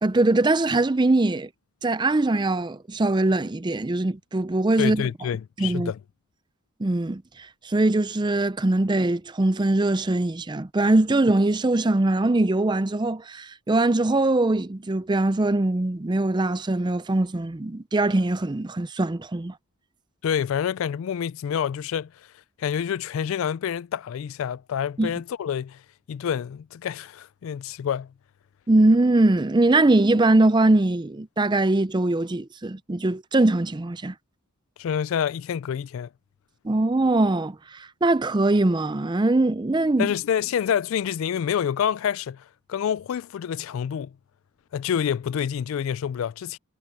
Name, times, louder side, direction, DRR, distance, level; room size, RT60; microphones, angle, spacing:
voice 1, 0.0-1.5 1.8-5.0 5.6-5.9 6.8-19.5 25.0-25.1 28.7-34.1 36.6-40.1, right 2 dB, 20° right, 0.5 m, -22 dB
voice 2, 4.8-6.0 20.2-22.3 22.6-25.8 26.1-28.1 34.8-36.1 40.0-44.2 44.7-46.6, left 8 dB, 70° left, 0.3 m, -27 dB
head